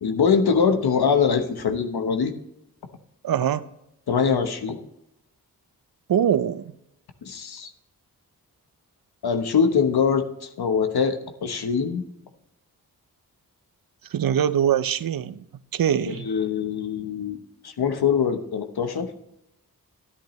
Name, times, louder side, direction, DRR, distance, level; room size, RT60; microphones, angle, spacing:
voice 1, 0.0-2.3 4.1-4.8 7.2-7.7 9.2-12.0 16.1-17.4 17.6-19.1, left 6 dB, 85° left, 1.1 m, -23 dB
voice 2, 3.2-3.6 6.1-6.7 14.1-15.4 15.7-16.3, right 9 dB, 65° right, 0.6 m, -23 dB
11.0 x 10.5 x 3.1 m
cardioid pair, 65°, 37 cm